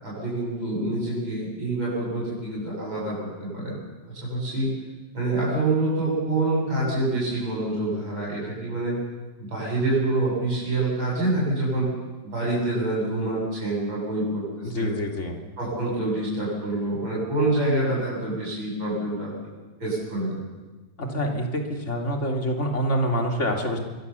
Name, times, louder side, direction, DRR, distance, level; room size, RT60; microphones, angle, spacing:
voice 1, 0.0-3.8 4.2-4.7 5.1-9.0 9.4-11.9 12.2-15.0 15.6-19.3 19.8-20.4, right 2 dB, 90° right, -5 dB, 8.3 m, -26 dB
voice 2, 14.7-15.3 21.0-21.6 21.9-23.8, equal, 35° left, 2 dB, 3.3 m, -26 dB
26.0 x 22.5 x 7.1 m, 1.2 s
omnidirectional pair, 2.1 m